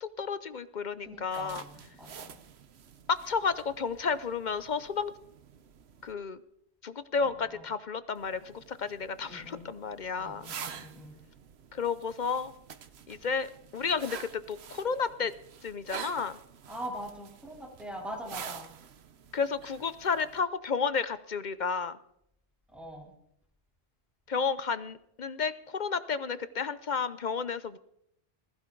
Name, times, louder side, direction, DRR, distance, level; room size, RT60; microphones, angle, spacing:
voice 1, 0.0-1.6 3.1-5.1 6.0-6.4 6.8-10.5 11.7-12.5 13.1-15.3 15.6-16.4 19.3-22.0 24.3-27.8, left 5 dB, 45° left, 14 dB, 0.7 m, -32 dB
voice 2, 1.0-2.4 7.2-7.7 9.2-9.6 10.2-11.2 13.1-13.2 16.7-18.7 22.7-23.1, equal, ahead, -1 dB, 3.5 m, -43 dB
sound 1, 1.3-6.1 8.2-20.4, right 7 dB, 65° right, 1.1 m, -48 dB
20.0 x 15.0 x 3.9 m, 0.75 s
omnidirectional pair, 1.2 m